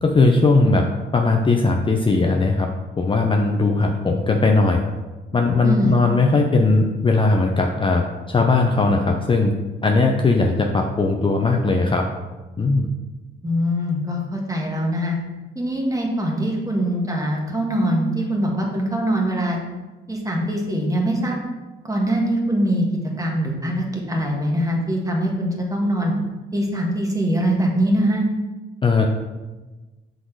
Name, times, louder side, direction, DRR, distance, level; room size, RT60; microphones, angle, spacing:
voice 1, 0.0-2.7 3.0-4.8 5.3-9.5 9.8-12.1 12.6-12.9 28.8-29.1, left 3 dB, 25° left, 2 dB, 0.5 m, -18 dB
voice 2, 5.6-6.0 13.4-15.2 15.5-19.6 20.1-21.3 21.8-22.8 23.2-26.1 26.5-28.3, equal, 15° right, 0 dB, 1.5 m, -22 dB
6.1 x 4.0 x 4.6 m, 1.2 s
cardioid pair, 90°, 20 cm